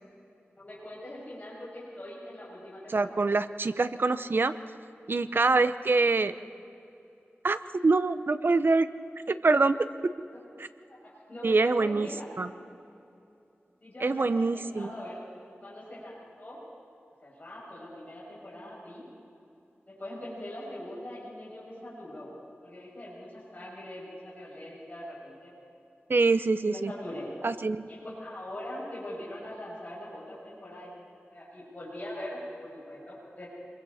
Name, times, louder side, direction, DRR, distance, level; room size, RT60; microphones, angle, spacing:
voice 1, 0.6-3.3 11.3-12.3 13.8-15.2 15.6-16.6 17.2-19.0 19.9-22.3 22.6-25.5 26.6-27.3 27.9-30.9 31.3-33.5, left 1 dB, 40° left, -7 dB, 6.8 m, -42 dB
voice 2, 2.9-4.5 5.1-6.3 7.4-7.6 7.8-8.9 9.3-9.8 11.4-12.1 12.4-12.5 14.0-14.9 26.1-26.9 27.4-27.9, right 3 dB, 55° right, 12 dB, 0.8 m, -24 dB
26.5 x 22.5 x 4.3 m, 2.7 s
wide cardioid pair, 70°, 4 cm